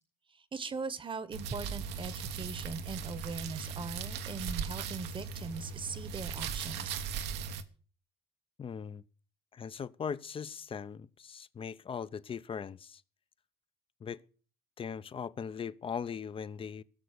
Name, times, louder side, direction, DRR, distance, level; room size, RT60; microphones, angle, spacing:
voice 1, 0.3-7.0, right 4 dB, 30° right, 1.0 m, -40 dB
sound 1, 1.3-7.6, right 6 dB, 90° right, 1.1 m, -38 dB
voice 2, 8.6-9.0 9.5-13.0 14.0-14.2 14.8-16.8, left 7 dB, 30° left, 0.6 m, -39 dB
17.0 x 6.8 x 6.6 m
cardioid pair, 110°, 17 cm